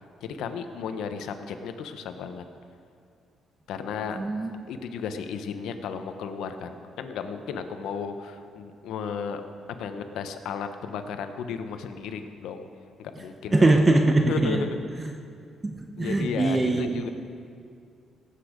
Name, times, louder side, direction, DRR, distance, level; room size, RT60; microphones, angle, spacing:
voice 1, 0.2-2.4 3.7-4.2 4.7-9.4 9.8-12.6 13.0-13.7 14.2-15.1 16.0-17.1, left 6 dB, 85° left, 8 dB, 0.9 m, -34 dB
voice 2, 4.2-4.5 13.5-14.6 15.6-17.0, right 2 dB, 20° right, 4 dB, 0.8 m, -22 dB
18.0 x 8.5 x 5.1 m, 2.4 s
cardioid pair, 110°, 0 cm